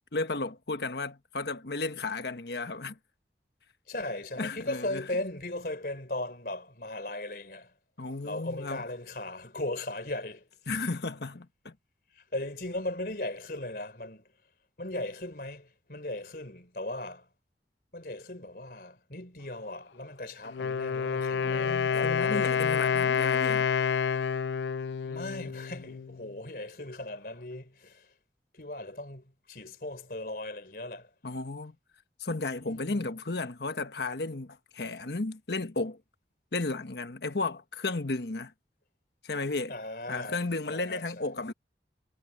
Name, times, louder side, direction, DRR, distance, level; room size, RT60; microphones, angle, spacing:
voice 1, 0.1-3.0 4.4-5.0 8.0-8.8 10.7-11.7 21.4-23.6 31.2-31.7 32.2-36.0 36.5-38.5 39.2-39.7 40.1-41.5, left 3 dB, 70° left, 1.3 m, -34 dB
voice 2, 3.9-7.7 8.2-10.5 12.1-14.3 14.8-17.3 17.9-23.0 25.0-28.1 28.5-31.1 32.6-33.1 39.7-41.3, left 1 dB, 55° left, 3.8 m, -38 dB
Wind instrument woodwind instrument, 20.4-26.2, left 6 dB, 90° left, 0.4 m, -28 dB
head